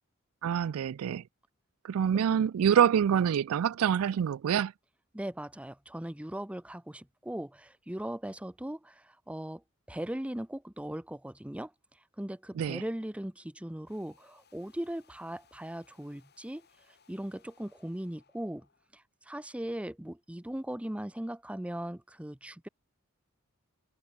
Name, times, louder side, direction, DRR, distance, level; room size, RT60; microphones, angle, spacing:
voice 1, 0.4-1.2 1.8-4.7 12.6-12.8, right 8 dB, 75° right, 0.3 m, -26 dB
voice 2, 5.1-9.6 9.9-11.7 12.2-16.6 17.1-18.7 18.9-22.7, right 1 dB, 5° right, 0.6 m, -39 dB
sound 1, 13.9-18.9, left 6 dB, 50° left, 7.8 m, -66 dB
head